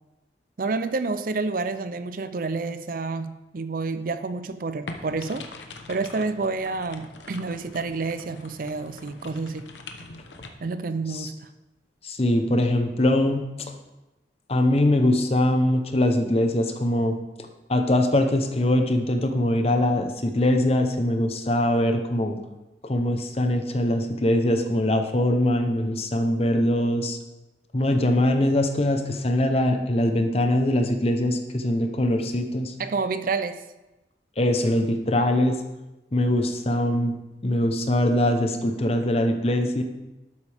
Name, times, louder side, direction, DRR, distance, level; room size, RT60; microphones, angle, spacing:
voice 1, 0.6-5.4 5.9-9.6 10.6-11.3 32.8-33.6, right 3 dB, 50° right, 11 dB, 0.5 m, -29 dB
sound 1, 4.9-10.5, left 3 dB, 80° left, 1.0 m, -42 dB
voice 2, 12.0-13.5 14.5-17.2 17.7-22.4 22.8-27.2 27.7-32.7 34.4-35.6 36.1-37.1 37.4-39.8, left 1 dB, 35° left, 5 dB, 0.9 m, -22 dB
12.0 x 8.1 x 3.5 m, 1.0 s
head